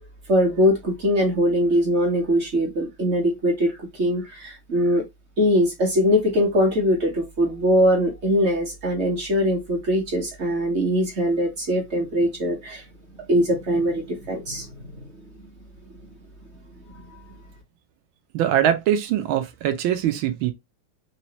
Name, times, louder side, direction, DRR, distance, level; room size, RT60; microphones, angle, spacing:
voice 1, 0.3-3.7 4.0-5.0 5.4-12.8 13.3-14.7, equal, 40° right, 1.1 m, -21 dB
voice 2, 18.3-20.5, right 10 dB, 85° right, 1.5 m, -22 dB
3.9 x 3.1 x 2.9 m
omnidirectional pair, 2.2 m